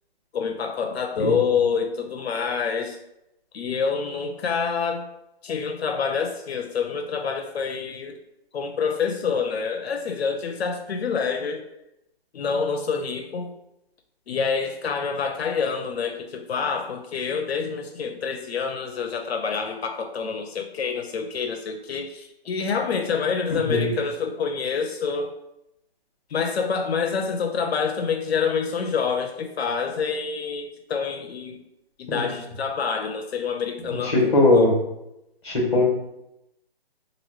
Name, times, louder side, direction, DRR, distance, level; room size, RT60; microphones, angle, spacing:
voice 1, 0.3-3.0 3.5-5.1 5.4-8.2 8.5-11.6 12.3-13.5 14.3-25.3 26.3-31.6 32.0-34.7, left 5 dB, 80° left, 5 dB, 0.5 m, -27 dB
voice 2, 34.0-34.7 35.4-35.8, left 2 dB, 25° left, -2 dB, 1.0 m, -19 dB
2.9 x 2.6 x 3.0 m, 0.86 s
hypercardioid pair, 180°, 31 cm